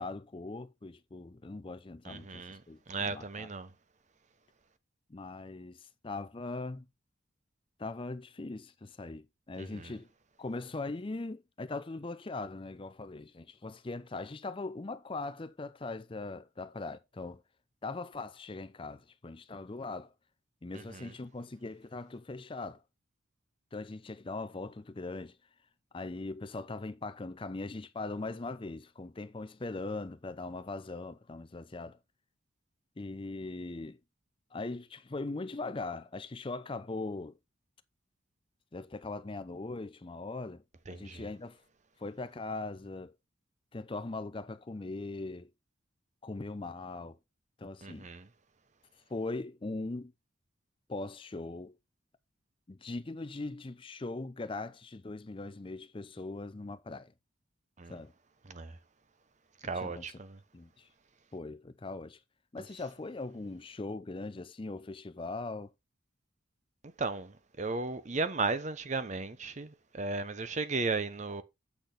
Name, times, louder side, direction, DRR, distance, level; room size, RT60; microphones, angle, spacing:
voice 1, 0.0-3.5 5.1-6.9 7.8-10.1 10.4-17.4 17.8-20.1 20.6-22.8 23.7-25.4 25.9-32.0 33.0-34.0 34.5-37.4 38.7-40.6 40.9-41.6 42.0-43.1 43.7-45.5 46.2-47.2 47.6-48.1 49.1-50.1 50.9-51.8 52.7-57.1 57.9-58.1 59.8-60.2 60.5-60.9 61.3-62.2 62.5-65.7, left 3 dB, 25° left, 0.5 m, -40 dB
voice 2, 2.0-2.6 2.9-3.7 9.6-9.9 20.7-21.1 40.9-41.2 47.8-48.3 57.8-58.0 58.5-58.8 59.6-60.4 67.0-71.4, right 3 dB, 35° right, 0.8 m, -35 dB
8.3 x 6.3 x 3.9 m
head